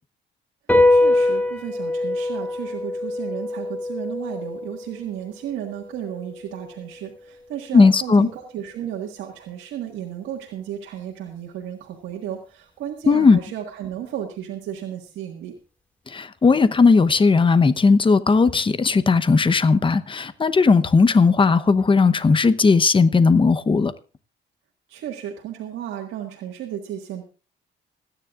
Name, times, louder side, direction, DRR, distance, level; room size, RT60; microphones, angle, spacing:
sound 1, 0.7-7.4, left 2 dB, 5° left, 2.2 m, -24 dB
voice 1, 0.9-15.5 24.9-27.3, right 10 dB, 85° right, 1.7 m, -34 dB
voice 2, 7.7-8.3 13.1-13.4 16.1-23.9, left 4 dB, 25° left, 0.9 m, -17 dB
26.5 x 9.8 x 2.5 m
cardioid pair, 90°, 20 cm